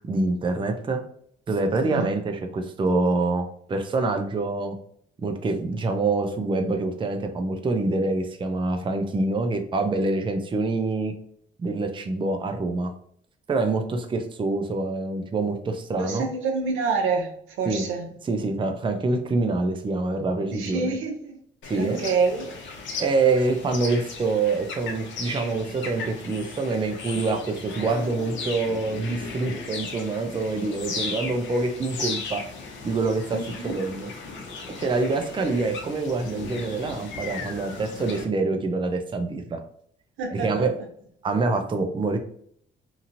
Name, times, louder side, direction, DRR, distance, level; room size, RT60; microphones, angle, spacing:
voice 1, 0.1-1.0 1.5-4.8 5.2-11.1 11.6-12.9 13.5-16.3 17.7-17.8 18.2-21.0 21.7-22.0 23.0-32.4 32.8-34.1 34.8-39.6 40.3-40.7 41.2-42.2, right 3 dB, 25° right, 5 dB, 0.5 m, -26 dB
voice 2, 1.8-2.1 16.0-17.3 17.6-18.1 20.5-21.4 21.7-22.5 33.3-33.7 40.2-40.7, right 4 dB, 85° right, 2 dB, 0.7 m, -27 dB
sound 1, 21.6-38.2, left 4 dB, 70° left, 0.8 m, -36 dB
2.9 x 2.7 x 2.6 m, 0.63 s
cardioid pair, 90°, 20 cm